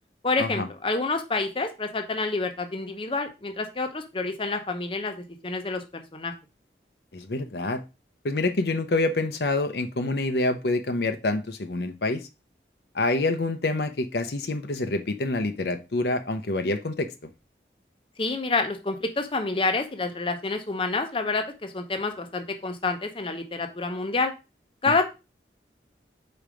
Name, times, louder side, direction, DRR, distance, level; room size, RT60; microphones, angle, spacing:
voice 1, 0.2-6.3 18.2-24.3 24.8-25.0, left 3 dB, 30° left, 6 dB, 0.8 m, -28 dB
voice 2, 7.1-7.8 8.2-12.3 12.9-17.3, left 2 dB, 65° left, 7 dB, 0.7 m, -27 dB
5.1 x 4.4 x 5.0 m, 0.28 s
head